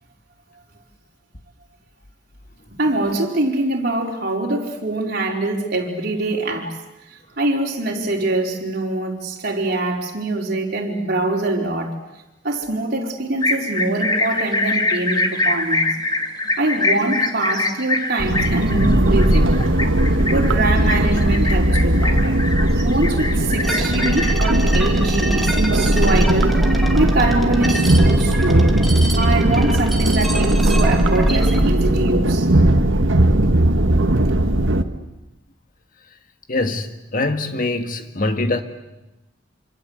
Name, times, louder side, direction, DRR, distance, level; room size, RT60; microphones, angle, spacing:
voice 1, 2.8-6.7 7.4-11.9 12.4-15.9 16.6-19.5 20.3-22.2 22.8-26.6 26.9-28.8 29.1-32.5, right 2 dB, 55° right, 4.7 m, -23 dB
sound 1, 13.4-24.3, left 2 dB, 20° left, 2.2 m, -24 dB
sound 2, 18.2-34.8, right 1 dB, 80° right, 1.6 m, -17 dB
sound 3, 23.6-31.6, right 1 dB, ahead, 2.7 m, -28 dB
voice 2, 36.5-38.6, left 2 dB, 45° left, 1.8 m, -23 dB
27.0 x 26.0 x 8.2 m
head